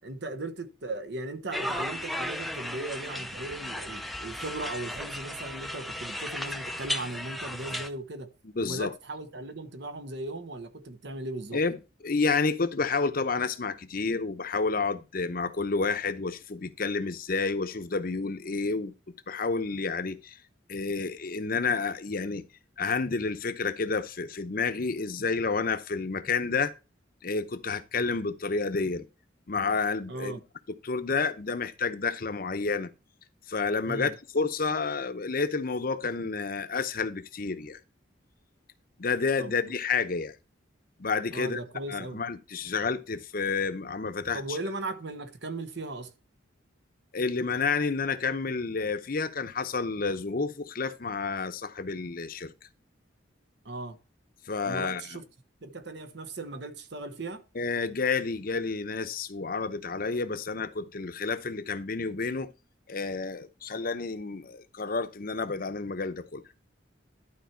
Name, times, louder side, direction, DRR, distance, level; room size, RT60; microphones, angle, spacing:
voice 1, 0.0-8.3 8.6-11.6 30.1-30.4 33.8-34.1 39.4-39.6 41.3-42.2 44.3-46.1 53.6-54.0 54.6-55.2 55.6-57.4, right 2 dB, 65° right, 1.1 m, -37 dB
sound 1, 1.5-7.9, left 1 dB, ahead, 0.5 m, -35 dB
voice 2, 8.6-8.9 11.5-11.8 12.0-18.9 19.3-20.4 20.7-22.4 22.8-26.7 27.2-29.0 29.5-30.4 30.8-32.9 33.5-37.8 39.0-40.3 41.0-41.6 41.9-44.6 47.1-52.5 54.5-55.2 57.5-62.5 62.9-66.4, left 4 dB, 50° left, 0.8 m, -30 dB
12.0 x 4.6 x 4.5 m
head